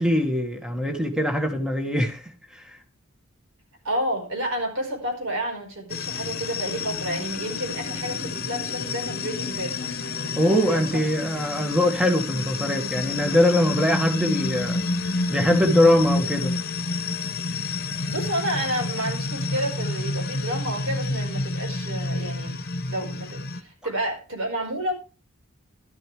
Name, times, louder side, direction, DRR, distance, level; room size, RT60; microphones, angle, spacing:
voice 1, 0.0-2.2 2.5-2.8 10.4-16.6, left 1 dB, 5° right, 1.7 m, -22 dB
voice 2, 3.8-10.8 18.1-22.6 22.9-24.9, right 1 dB, 65° right, 4.8 m, -30 dB
sound 1, 5.9-23.6, left 3 dB, 50° left, 1.2 m, -29 dB
12.0 x 12.0 x 3.3 m
head